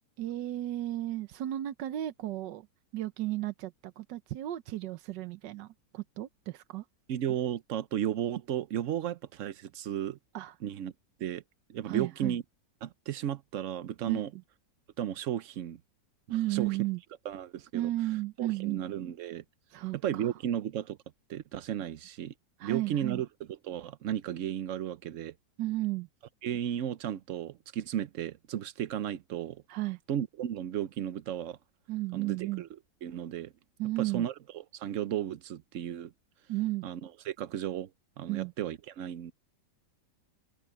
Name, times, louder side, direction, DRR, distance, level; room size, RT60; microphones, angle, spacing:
voice 1, 0.2-2.7 2.9-6.8 10.3-10.5 11.9-12.4 14.1-14.4 16.3-17.0 17.7-18.8 19.7-20.3 22.6-23.2 25.6-26.1 29.7-30.0 31.9-32.6 33.8-34.2 36.5-36.8 38.3-38.5, right 16 dB, 80° right, 1.4 m, -33 dB
voice 2, 7.1-10.2 10.6-10.9 11.2-11.4 11.7-12.4 12.8-14.3 15.0-15.8 16.3-16.8 17.2-17.9 18.4-19.4 19.9-21.0 21.3-22.3 22.6-23.3 23.6-25.3 26.4-29.6 30.1-31.6 32.1-32.7 33.0-33.5 34.0-36.1 36.8-37.9 38.2-39.3, right 10 dB, 60° right, 0.8 m, -34 dB
omnidirectional pair, 1.9 m